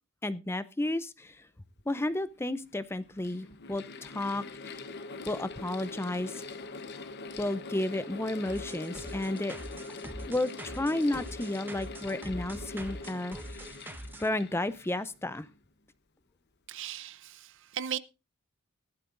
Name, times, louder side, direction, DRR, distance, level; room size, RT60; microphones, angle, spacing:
voice 1, 0.2-1.5 1.9-4.9 5.3-6.4 7.4-9.5 10.3-13.6 14.2-15.5, left 1 dB, 10° left, 0.5 m, -32 dB
Mechanical fan, 1.9-2.0 2.9-15.5, left 3 dB, 50° left, 0.9 m, -43 dB
sound 1, 8.5-14.3, right 1 dB, 10° right, 0.9 m, -43 dB
voice 2, 16.7-18.0, right 9 dB, 60° right, 0.6 m, -37 dB
18.0 x 11.5 x 2.5 m
head